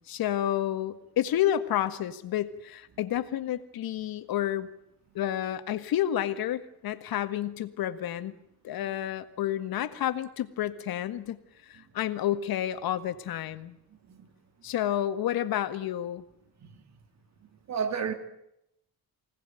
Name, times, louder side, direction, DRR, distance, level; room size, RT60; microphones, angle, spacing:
voice 1, 0.1-4.7 5.2-8.4 8.6-11.4 11.7-13.8 14.6-16.2, left 11 dB, 70° left, 10 dB, 1.9 m, -30 dB
voice 2, 17.7-18.1, right 6 dB, 45° right, 8 dB, 2.7 m, -31 dB
25.0 x 18.5 x 9.2 m, 0.80 s
cardioid pair, 155°, 36 cm